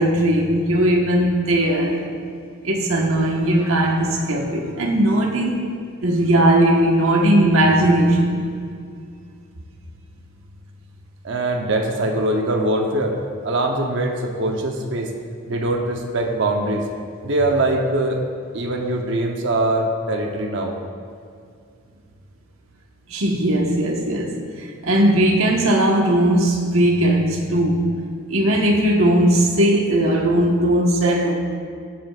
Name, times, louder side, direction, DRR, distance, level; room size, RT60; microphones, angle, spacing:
voice 1, 0.0-2.0 2.6-5.7 6.0-8.4 23.1-27.8 28.3-31.4, right 1 dB, 85° right, 1 dB, 1.3 m, -18 dB
voice 2, 11.2-15.1 15.5-16.9 17.2-18.2 18.5-20.8, right 1 dB, 60° right, 2 dB, 0.8 m, -22 dB
18.5 x 7.7 x 2.4 m, 2.3 s
head